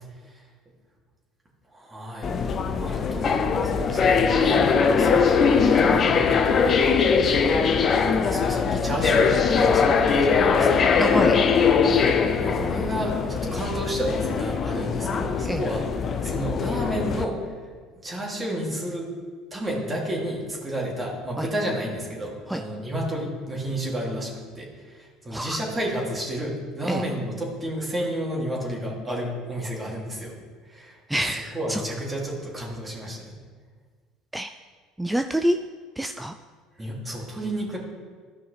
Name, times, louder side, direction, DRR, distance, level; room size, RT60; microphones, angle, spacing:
voice 1, 1.7-2.3 2.8-7.0 8.2-11.0 11.8-12.1 12.4-15.9 16.2-17.5 18.0-19.1 19.5-30.4 30.7-31.2 31.5-33.4 36.8-37.8, right 1 dB, 25° right, -3 dB, 2.7 m, -31 dB
sound 1, 2.2-17.2, left 5 dB, 40° left, 0.7 m, -21 dB
voice 2, 11.0-11.4 15.4-15.6 21.4-21.5 22.5-22.6 25.3-25.6 26.8-27.0 31.1-31.8 34.3-34.5 35.0-35.6 36.0-36.3, right 1 dB, 5° right, 7 dB, 0.4 m, -26 dB
13.5 x 5.6 x 3.4 m, 1.5 s
hypercardioid pair, 65°, 0 cm